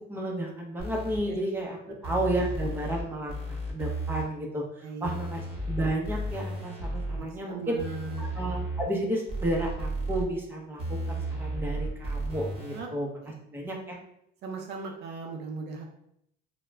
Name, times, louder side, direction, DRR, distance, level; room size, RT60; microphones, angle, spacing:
voice 1, 0.1-1.8 2.0-7.8 8.2-13.1 13.5-14.0, right 1 dB, 10° right, -1 dB, 0.6 m, -32 dB
sound 1, 0.8-1.2 2.0-3.0 3.3-4.2 5.0-7.2 7.8-8.9 9.3-10.2 10.8-12.8, right 1 dB, 30° right, 0.9 m, -33 dB
voice 2, 4.8-5.2 7.2-8.3 12.7-12.9 13.2-13.3 14.4-15.8, right 4 dB, 55° right, 2 dB, 0.5 m, -38 dB
2.3 x 2.0 x 3.2 m, 0.75 s
cardioid pair, 110°, 20 cm